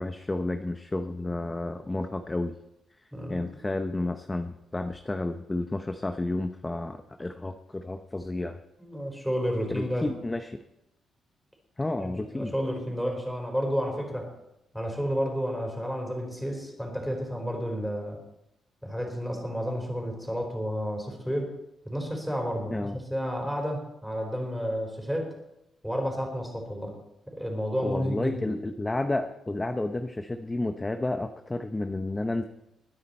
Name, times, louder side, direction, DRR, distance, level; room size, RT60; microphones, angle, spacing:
voice 1, 0.0-2.5 3.3-8.6 9.7-10.6 11.8-12.5 22.7-23.0 27.8-32.4, left 2 dB, 15° left, 7 dB, 0.8 m, -31 dB
voice 2, 3.1-3.6 8.8-10.1 12.0-14.3 14.7-18.2 18.8-21.5 21.8-25.3 25.8-27.0 27.3-28.5, equal, ahead, 1 dB, 4.3 m, -31 dB
21.5 x 9.6 x 4.4 m, 0.88 s
cardioid pair, 120°, 0 cm